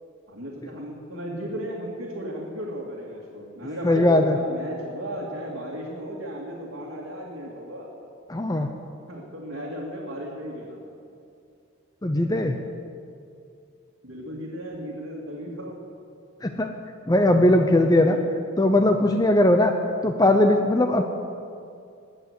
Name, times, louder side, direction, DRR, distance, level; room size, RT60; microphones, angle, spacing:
voice 1, 0.3-7.9 9.1-10.8 12.4-12.6 14.0-15.8 18.0-18.3, equal, 65° right, -5 dB, 2.4 m, -35 dB
voice 2, 3.8-4.4 8.3-8.7 12.0-12.6 16.4-16.7 17.1-18.2 18.6-19.7 20.0-21.0, left 1 dB, 20° left, 5 dB, 0.6 m, -19 dB
21.0 x 8.2 x 8.2 m, 2.5 s
head